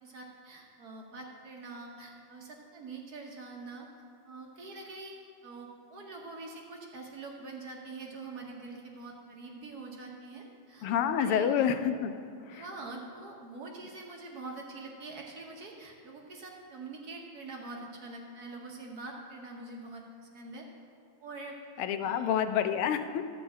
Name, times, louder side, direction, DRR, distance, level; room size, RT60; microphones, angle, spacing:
voice 1, 0.0-3.9 4.2-5.1 5.4-11.7 12.5-20.7 21.2-21.6 22.0-22.3, right 3 dB, 55° right, 0 dB, 1.2 m, -44 dB
voice 2, 10.8-12.1 12.5-12.6 21.8-23.3, left 8 dB, 90° left, 9 dB, 1.5 m, -28 dB
12.0 x 4.3 x 7.9 m, 2.4 s
omnidirectional pair, 2.4 m